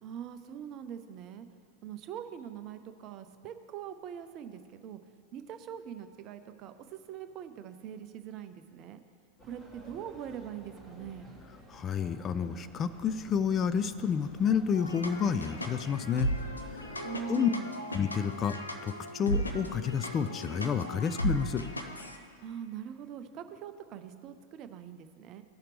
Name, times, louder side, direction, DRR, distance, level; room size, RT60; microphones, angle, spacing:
voice 1, 0.0-1.5 1.8-5.0 5.3-9.0 9.4-11.3 17.0-17.7 22.4-25.4, right 9 dB, 35° right, 9 dB, 0.5 m, -43 dB
sound 1, 9.4-17.1, equal, 5° left, 1.4 m, -52 dB
voice 2, 11.7-16.3 16.9-17.5 17.9-21.6, left 7 dB, 25° left, 11 dB, 0.3 m, -30 dB
sound 2, 14.7-22.2, equal, 80° left, 0.6 m, -36 dB
15.5 x 5.7 x 3.3 m, 2.3 s
figure-of-eight pair, 90°, 0 cm